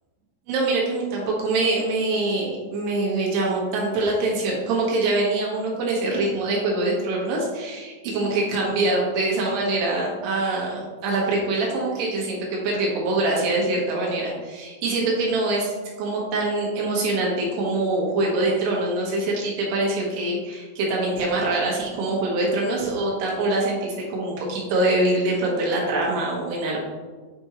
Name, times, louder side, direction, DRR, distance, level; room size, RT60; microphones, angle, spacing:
voice 1, 0.5-1.0 1.4-15.7 16.0-26.8, right 2 dB, 70° right, -3 dB, 3.3 m, -24 dB
8.5 x 5.3 x 2.9 m, 1.4 s
omnidirectional pair, 5.3 m